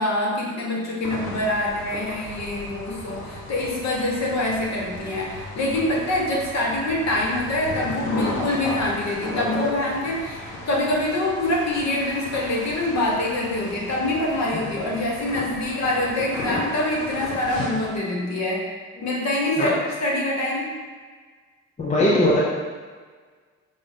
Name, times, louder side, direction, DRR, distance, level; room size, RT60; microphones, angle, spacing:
voice 1, 0.0-18.7 19.0-20.7, left 1 dB, 40° left, -3 dB, 1.0 m, -25 dB
sound 1, 1.0-17.9, left 1 dB, 75° left, 0.7 m, -35 dB
voice 2, 21.8-22.4, left 1 dB, 20° left, -4 dB, 0.5 m, -21 dB
4.7 x 2.1 x 2.7 m, 1.5 s
hypercardioid pair, 45°, 40 cm